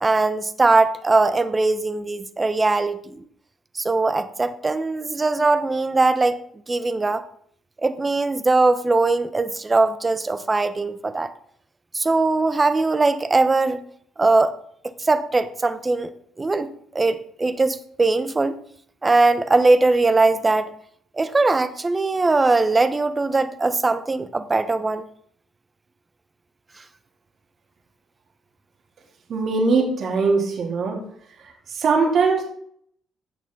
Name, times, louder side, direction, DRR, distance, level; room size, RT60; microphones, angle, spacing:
voice 1, 0.0-3.2 3.7-6.4 6.7-7.2 7.8-11.3 11.9-13.8 14.2-14.5 15.0-16.1 16.4-18.6 19.0-20.7 21.2-25.0, right 3 dB, 25° right, 1.0 m, -20 dB
voice 2, 29.3-31.0 31.4-32.4, right 4 dB, 55° right, 3.5 m, -21 dB
16.0 x 6.1 x 4.0 m
cardioid pair, 85°, 0 cm